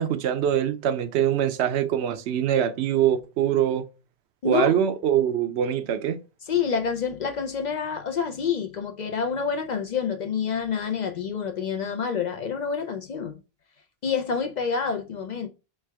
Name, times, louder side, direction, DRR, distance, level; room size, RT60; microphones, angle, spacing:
voice 1, 0.0-3.8 4.4-6.2, right 10 dB, 85° right, 0.8 m, -23 dB
voice 2, 4.4-4.8 6.4-13.4 14.0-15.5, left 6 dB, 55° left, 0.5 m, -28 dB
3.4 x 3.3 x 3.3 m
omnidirectional pair, 1.1 m